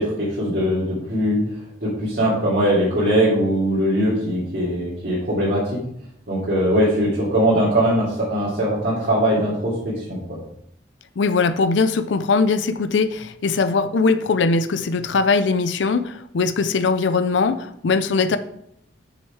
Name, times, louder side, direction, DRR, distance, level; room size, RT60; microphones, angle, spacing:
voice 1, 0.0-1.4 1.8-5.7 6.3-10.2, equal, 55° right, -9 dB, 2.9 m, -21 dB
voice 2, 11.2-18.4, left 4 dB, 75° left, 12 dB, 0.5 m, -20 dB
6.5 x 6.4 x 4.7 m, 0.72 s
head